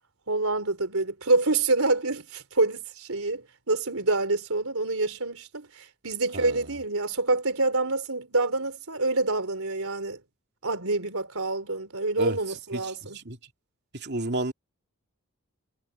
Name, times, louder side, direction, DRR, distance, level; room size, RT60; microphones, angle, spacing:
voice 1, 0.3-10.2 10.6-13.2, right 2 dB, 70° right, 4.1 m, -27 dB
voice 2, 12.7-13.4 13.9-14.5, right 1 dB, 50° right, 2.7 m, -31 dB
head